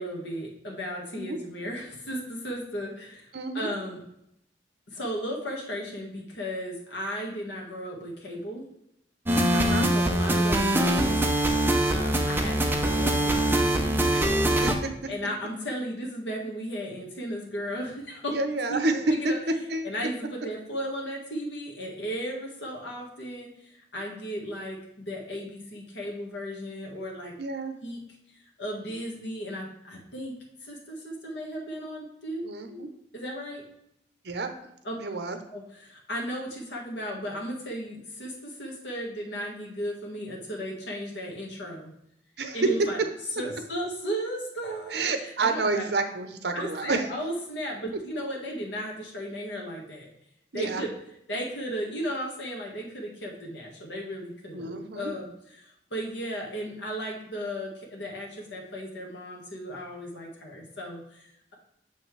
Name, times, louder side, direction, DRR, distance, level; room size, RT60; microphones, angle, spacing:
voice 1, 0.0-3.3 3.5-4.0 4.9-8.6 9.9-11.4 11.9-14.2 15.1-18.3 18.7-18.8 19.1-19.4 19.8-27.3 27.8-28.0 28.6-30.3 30.6-32.4 32.7-32.8 33.1-33.6 34.8-35.0 35.5-41.9 42.5-43.0 43.3-45.9 46.5-50.1 50.5-50.9 51.3-61.5, equal, 80° left, -2 dB, 1.7 m, -35 dB
voice 2, 3.3-3.7 9.5-9.9 14.1-14.7 18.3-19.3 19.7-19.9 27.4-27.8 32.4-32.9 34.2-34.5 35.0-35.4 42.4-42.6 44.9-47.1 50.5-50.8 54.5-55.1, right 3 dB, 65° right, 7 dB, 0.7 m, -29 dB
sound 1, 9.3-14.7, right 1 dB, 10° right, 0.6 m, -23 dB
6.6 x 5.7 x 3.3 m, 0.77 s
head